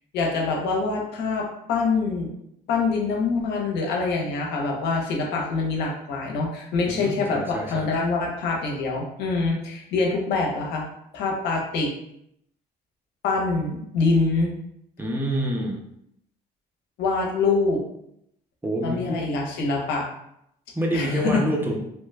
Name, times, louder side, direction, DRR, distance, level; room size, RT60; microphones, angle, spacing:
voice 1, 0.1-2.3 2.7-10.8 11.1-11.9 13.2-14.5 17.0-17.8 18.8-20.0 20.9-21.4, left 4 dB, 80° left, 0 dB, 0.8 m, -25 dB
voice 2, 6.8-7.9 15.0-15.8 18.6-19.3 20.7-21.8, right 1 dB, 10° right, -1 dB, 0.6 m, -27 dB
2.9 x 2.2 x 3.2 m, 0.76 s
cardioid pair, 110°, 17 cm